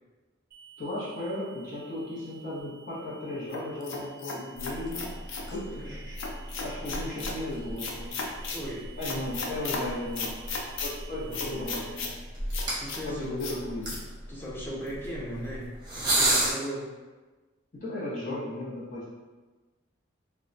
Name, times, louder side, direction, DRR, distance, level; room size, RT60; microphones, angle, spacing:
sound 1, 0.5-11.9, right 9 dB, 50° right, 0.3 m, -53 dB
voice 1, 0.8-5.1 5.5-6.2 6.6-8.1 9.0-10.4 10.8-12.1 13.0-13.9 17.7-19.1, left 1 dB, 45° left, -9 dB, 0.7 m, -36 dB
sound 2, 3.5-5.5 6.2-7.4 7.8-8.6 9.0-9.8 10.1-10.9 11.3-12.1 12.5-13.0 13.4-13.6 13.8-14.0, left 4 dB, 85° left, 0.4 m, -35 dB
sound 3, 4.6-16.5, right 1 dB, 20° right, 0.8 m, -34 dB
voice 2, 8.5-8.9 11.1-12.1 12.8-13.6 13.9-14.0 14.3-16.9, equal, 10° left, -5 dB, 0.5 m, -38 dB
2.2 x 2.1 x 3.8 m, 1.2 s
head